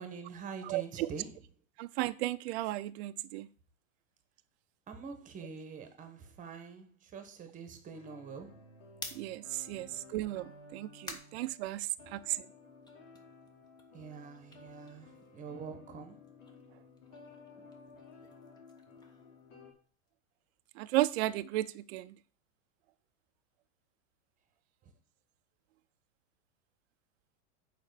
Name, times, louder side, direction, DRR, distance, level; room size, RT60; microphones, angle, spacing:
voice 1, 0.0-1.5 4.9-8.7 9.7-10.0 12.0-12.2 13.9-16.3 24.8-24.9, right 5 dB, 20° right, 1.3 m, -46 dB
voice 2, 0.7-1.1 1.8-3.5 9.2-12.4 20.8-22.1, right 17 dB, 55° right, 0.6 m, -34 dB
sound 1, 7.9-11.7 12.0-19.7, left 3 dB, 65° left, 3.2 m, -55 dB
sound 2, 8.9-12.3 12.7-15.7 16.0-20.1, left 2 dB, 10° left, 0.9 m, -52 dB
7.2 x 5.1 x 6.7 m
supercardioid pair, 150°, 39 cm